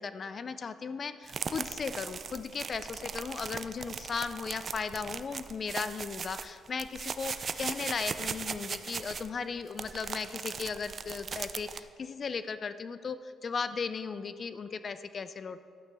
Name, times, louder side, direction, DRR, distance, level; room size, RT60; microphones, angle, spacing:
voice 1, 0.0-15.6, left 5 dB, 45° left, 12 dB, 0.4 m, -36 dB
sound 1, 1.3-11.8, right 5 dB, 45° right, 0.4 m, -38 dB
11.5 x 8.5 x 3.5 m, 2.2 s
cardioid pair, 90°, 0 cm